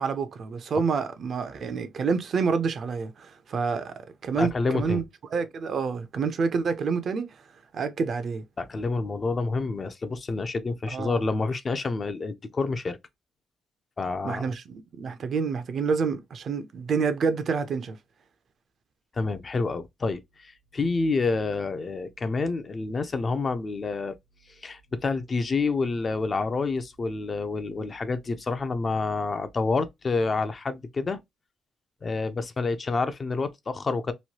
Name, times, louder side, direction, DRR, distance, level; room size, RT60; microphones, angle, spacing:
voice 1, 0.0-5.1 5.3-7.3 7.7-8.4 10.9-11.2 14.2-18.0, right 5 dB, 55° right, 0.5 m, -28 dB
voice 2, 4.4-5.0 8.6-13.0 14.0-14.5 19.1-24.1 24.5-31.2 32.0-34.1, left 3 dB, 35° left, 0.4 m, -28 dB
3.0 x 2.2 x 2.8 m
cardioid pair, 90°, 0 cm